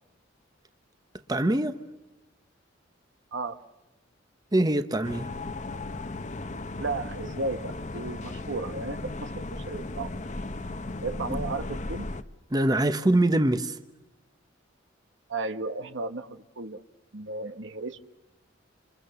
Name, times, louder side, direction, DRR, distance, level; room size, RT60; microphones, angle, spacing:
voice 1, 1.3-1.7 4.5-5.3 11.3-11.4 12.5-13.8, right 1 dB, 20° right, 0.9 m, -23 dB
sound 1, 5.0-12.2, left 2 dB, 40° left, 0.9 m, -36 dB
voice 2, 6.8-10.1 11.0-12.1 15.3-16.8 17.1-18.0, right 3 dB, 65° right, 1.2 m, -34 dB
28.0 x 27.0 x 6.9 m
head